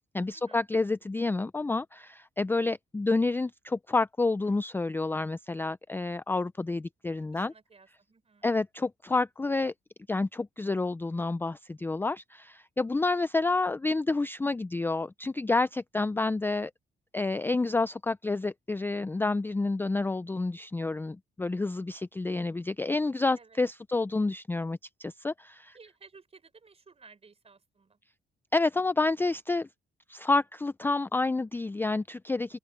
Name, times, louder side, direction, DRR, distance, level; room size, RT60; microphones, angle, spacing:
voice 1, 0.1-7.5 8.4-9.7 10.1-16.7 17.1-25.8 28.5-29.7 30.1-32.6, left 3 dB, 10° left, 0.4 m, -29 dB
voice 2, 7.1-8.5 12.8-12.9 23.4-23.6 25.7-28.0, right 4 dB, 30° right, 4.0 m, -56 dB
open air
cardioid pair, 90°, 20 cm